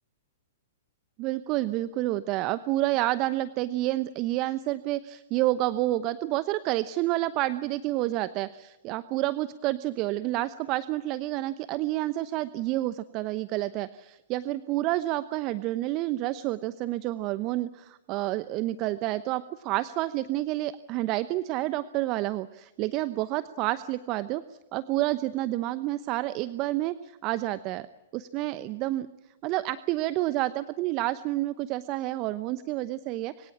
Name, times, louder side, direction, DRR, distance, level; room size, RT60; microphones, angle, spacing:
voice 1, 1.2-24.4 24.7-27.9 28.1-29.1 29.4-33.5, right 16 dB, 35° right, 15 dB, 0.9 m, -29 dB
26.0 x 23.5 x 7.4 m, 1.0 s
figure-of-eight pair, 110°, 0 cm